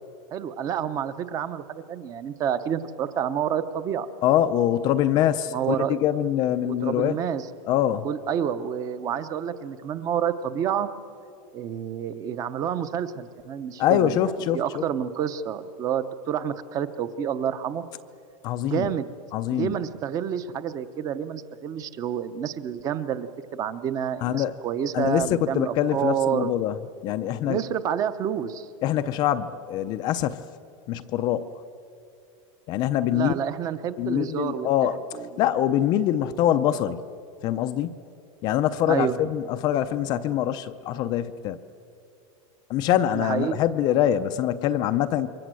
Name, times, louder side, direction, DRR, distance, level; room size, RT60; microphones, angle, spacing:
voice 1, 0.3-4.1 5.5-6.0 6.6-7.5 8.0-10.9 11.5-14.2 14.5-17.8 18.6-19.1 19.5-26.5 27.4-28.7 33.1-34.7 35.1-35.4 38.9-39.2 43.1-43.6, right 9 dB, 20° right, 13 dB, 0.8 m, -29 dB
voice 2, 4.2-7.2 7.7-8.1 13.8-14.8 18.4-18.9 19.3-19.8 24.2-24.5 24.9-26.8 27.0-27.6 28.8-30.4 30.9-31.5 32.7-33.3 34.0-35.0 35.4-37.0 37.4-37.9 38.4-41.6 42.7-45.3, left 11 dB, 25° left, 11 dB, 0.5 m, -24 dB
27.0 x 23.5 x 7.7 m, 2.6 s
supercardioid pair, 180°, 17 cm